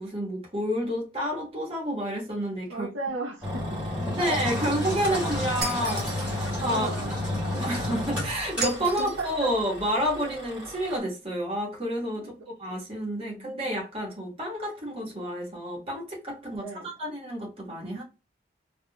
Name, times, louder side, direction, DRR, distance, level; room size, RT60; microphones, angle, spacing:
voice 1, 0.0-2.9 4.0-6.9 7.5-18.0, equal, 30° right, 1.4 m, -30 dB
voice 2, 2.7-3.6 4.6-4.7 6.7-7.1 8.8-9.5 12.2-12.5 13.2-13.6 16.5-16.9, right 2 dB, 90° right, 0.8 m, -36 dB
Engine, 3.4-11.0, left 1 dB, 5° right, 1.9 m, -31 dB
Shatter, 5.6-6.4 8.6-9.3, right 3 dB, 50° right, 1.1 m, -34 dB
3.6 x 2.6 x 2.2 m
head